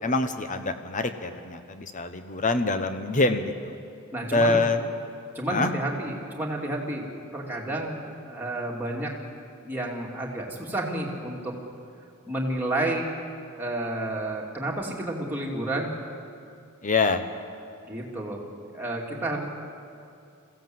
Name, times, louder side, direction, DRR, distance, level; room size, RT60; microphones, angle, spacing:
voice 1, 0.0-3.8 4.3-4.8 5.5-5.7 16.8-17.2, left 3 dB, 35° left, 8 dB, 1.1 m, -25 dB
voice 2, 4.1-4.6 5.3-9.1 9.6-11.5 12.3-13.1 13.6-16.0 17.8-18.4 18.7-19.4, right 1 dB, 10° right, -3 dB, 2.6 m, -30 dB
22.0 x 15.5 x 7.8 m, 2.5 s
head